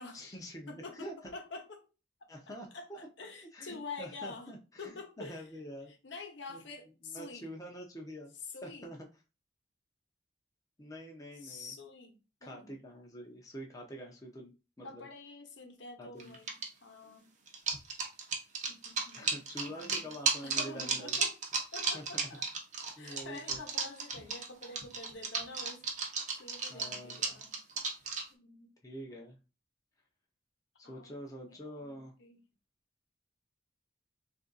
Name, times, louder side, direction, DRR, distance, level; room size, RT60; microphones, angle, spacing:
voice 1, 0.1-1.1 2.3-3.0 3.5-5.9 6.5-6.6 7.0-8.3 8.6-9.1 10.8-11.8 12.4-15.1 16.0-16.4 19.1-21.2 21.9-22.0 23.0-23.6 26.7-27.4 28.8-29.4 30.8-32.1, equal, 20° left, 0 dB, 0.6 m, -46 dB
voice 2, 0.7-1.9 2.2-2.3 2.7-4.5 4.8-5.5 6.0-7.5 8.4-8.9 11.4-12.7 14.8-17.3 18.7-20.1 20.4-21.3 21.7-22.5 23.0-27.6 28.3-28.7 30.8-32.4, left 3 dB, 75° left, 4 dB, 0.9 m, -47 dB
sound 1, 16.2-16.7 17.5-28.2, right 5 dB, 40° right, 0.7 m, -34 dB
3.3 x 2.6 x 3.9 m, 0.31 s
head